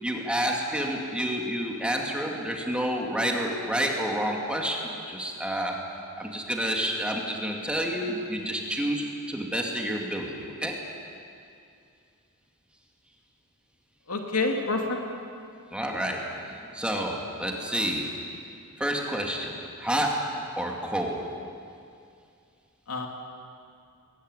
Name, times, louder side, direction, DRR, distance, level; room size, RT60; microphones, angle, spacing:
voice 1, 0.0-5.8 6.2-10.8 15.7-18.2 18.8-21.3, equal, 5° right, 0 dB, 2.4 m, -29 dB
voice 2, 14.1-15.0 22.9-23.1, left 3 dB, 75° left, 2 dB, 2.7 m, -27 dB
21.5 x 17.0 x 9.8 m, 2.5 s
head